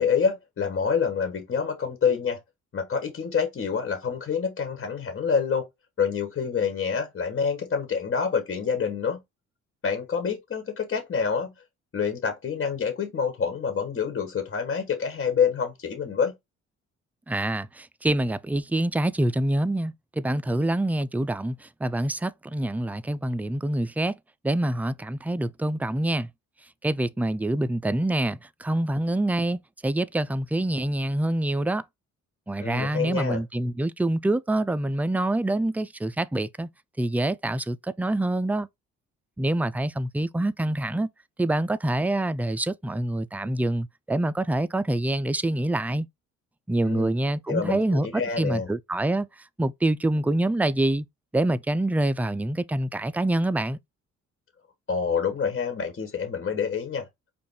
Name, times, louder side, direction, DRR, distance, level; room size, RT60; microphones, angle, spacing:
voice 1, 0.0-2.4 2.7-5.7 6.0-9.2 9.8-11.5 11.9-16.3 32.6-33.4 46.8-47.1 47.5-48.7 54.9-57.1, left 6 dB, 40° left, 1.4 m, -27 dB
voice 2, 17.3-24.1 24.4-26.3 26.8-31.8 32.5-36.7 37.0-38.7 39.4-41.1 41.4-46.1 46.7-48.1 48.4-49.3 49.6-51.1 51.3-53.8, right 1 dB, 5° right, 0.3 m, -26 dB
5.2 x 2.5 x 4.2 m
cardioid pair, 90°, 30 cm